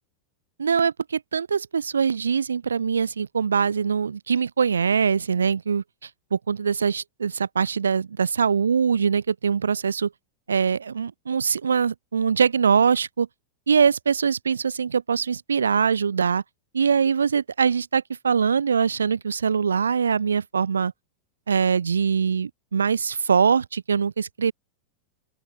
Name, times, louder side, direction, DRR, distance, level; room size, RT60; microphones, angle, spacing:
voice 1, 0.6-5.8 6.3-10.1 10.5-13.3 13.7-16.4 16.7-20.9 21.5-24.5, right 6 dB, 70° right, 0.3 m, -22 dB
open air
figure-of-eight pair, 90°, 0 cm